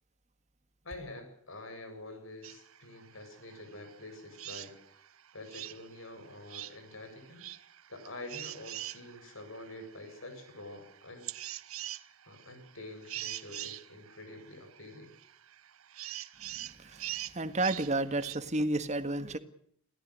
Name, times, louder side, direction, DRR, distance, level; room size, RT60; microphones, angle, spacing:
voice 1, 0.8-4.7 5.3-7.4 7.9-11.3 12.3-15.1, left 2 dB, 70° left, 7.8 m, -47 dB
sound 1, 2.4-18.4, right 14 dB, 80° right, 1.0 m, -45 dB
voice 2, 16.4-19.4, right 2 dB, 35° right, 1.7 m, -32 dB
27.5 x 17.5 x 6.6 m
head